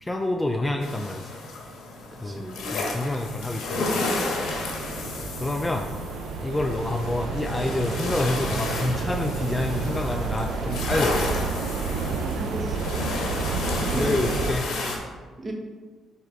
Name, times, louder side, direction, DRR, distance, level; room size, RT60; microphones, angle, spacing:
voice 1, 0.0-1.3 2.2-2.4 2.7-3.9 4.4-4.5 5.2-5.9 6.4-11.2 11.9-12.0 13.4-14.7, left 2 dB, 15° left, 4 dB, 0.4 m, -28 dB
sound 1, 0.8-15.0, left 2 dB, 80° left, 1.2 m, -32 dB
voice 2, 2.1-2.6 12.2-13.0 13.9-14.1 15.4-15.5, right 2 dB, 25° right, 2 dB, 1.0 m, -35 dB
sound 2, 2.1-14.6, right 4 dB, 70° right, 0.5 m, -31 dB
5.6 x 4.6 x 4.6 m, 1.4 s
cardioid pair, 120°, 0 cm